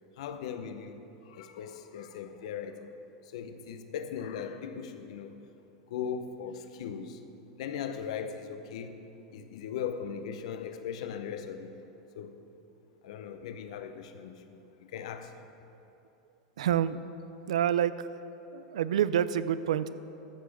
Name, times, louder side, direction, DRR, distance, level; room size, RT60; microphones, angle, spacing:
voice 1, 0.2-2.9 3.3-5.4 5.9-7.2 7.6-8.9 9.3-11.8 12.1-12.4 13.0-15.3, left 7 dB, 70° left, 8 dB, 0.7 m, -39 dB
voice 2, 16.6-17.0 17.5-18.1 18.5-19.9, right 10 dB, 85° right, 15 dB, 0.4 m, -27 dB
13.5 x 5.0 x 6.2 m, 2.9 s
hypercardioid pair, 110°, 3 cm